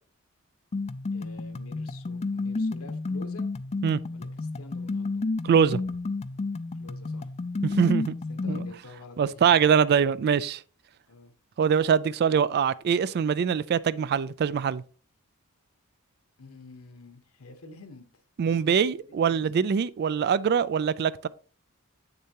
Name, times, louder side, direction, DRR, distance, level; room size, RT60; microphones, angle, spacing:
sound 1, 0.7-8.7, left 3 dB, 30° left, 0.4 m, -31 dB
voice 1, 1.1-3.5 4.1-5.2 6.8-7.3 8.3-9.7 11.1-11.3 16.4-19.7, left 3 dB, 75° left, 1.1 m, -48 dB
voice 2, 5.4-5.8 7.6-8.2 8.5-8.6 9.2-10.6 11.6-14.8 18.4-21.3, right 7 dB, 50° right, 0.3 m, -23 dB
7.6 x 6.7 x 2.9 m
head